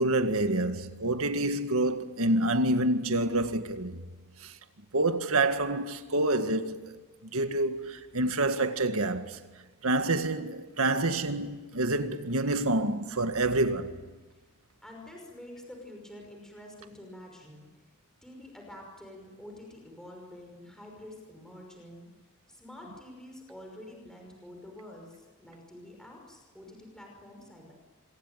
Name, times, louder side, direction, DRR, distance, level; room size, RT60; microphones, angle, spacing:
voice 1, 0.0-4.0 4.4-4.5 4.9-9.4 9.8-13.9, right 2 dB, 70° right, 1.9 m, -27 dB
voice 2, 14.8-17.7 18.2-22.1 22.5-27.7, left 1 dB, 5° left, 5.7 m, -47 dB
26.5 x 24.0 x 9.3 m
head